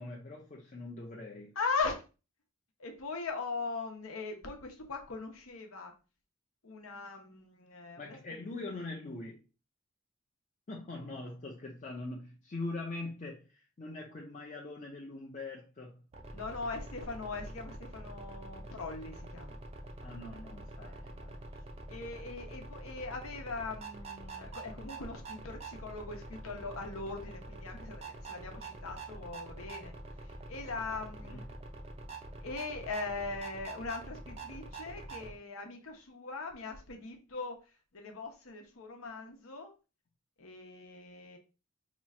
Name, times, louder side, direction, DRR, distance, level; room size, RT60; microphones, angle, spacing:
voice 1, 0.0-1.6 8.0-9.4 10.7-16.0 20.0-20.9 31.2-31.5, left 2 dB, 35° left, 0.5 m, -42 dB
voice 2, 1.6-2.0 2.8-5.9 6.6-8.2 16.3-19.6 20.8-21.4 21.9-30.0 30.2-31.4 32.4-37.6 37.9-39.7 40.4-41.4, left 4 dB, 85° left, 0.9 m, -40 dB
sound 1, 16.1-35.4, right 2 dB, 30° right, 0.5 m, -46 dB
3.0 x 2.4 x 4.2 m
head